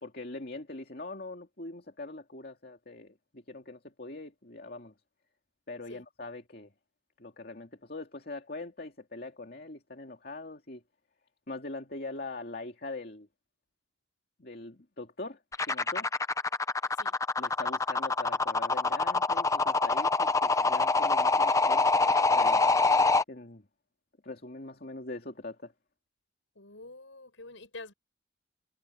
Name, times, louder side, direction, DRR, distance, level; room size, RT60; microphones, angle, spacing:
voice 1, 0.0-4.9 5.7-6.7 7.2-10.8 11.5-13.3 14.4-16.1 17.4-21.9 22.3-22.7 23.3-23.6 24.2-25.7, left 2 dB, 55° left, 2.4 m, -42 dB
sound 1, 15.5-23.2, left 3 dB, 15° left, 0.7 m, -25 dB
voice 2, 26.5-27.9, left 2 dB, 85° left, 6.7 m, -47 dB
head